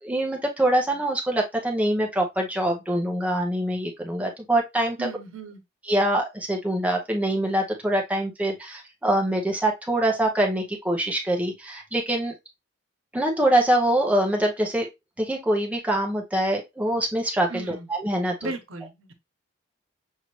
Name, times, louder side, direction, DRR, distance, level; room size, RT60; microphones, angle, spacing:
voice 1, 0.0-5.1 5.9-12.3 13.1-14.9 15.2-18.5, right 1 dB, 5° right, 0.8 m, -24 dB
voice 2, 5.0-5.6 17.5-17.9 18.4-19.1, right 3 dB, 85° right, 1.1 m, -35 dB
6.4 x 2.6 x 3.1 m
head